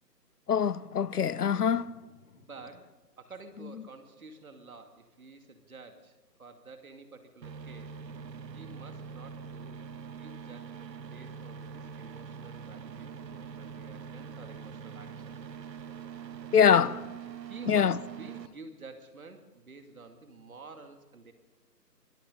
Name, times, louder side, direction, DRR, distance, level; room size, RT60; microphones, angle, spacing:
voice 1, 0.5-1.9 16.5-17.1 17.7-18.0, left 7 dB, 65° left, 0.7 m, -24 dB
voice 2, 2.3-8.0 8.5-9.8 10.1-15.3 17.4-21.3, right 3 dB, 55° right, 2.4 m, -50 dB
sound 1, 7.4-18.5, right 6 dB, 80° right, 1.0 m, -43 dB
24.0 x 14.0 x 3.8 m
hypercardioid pair, 170°, 50 cm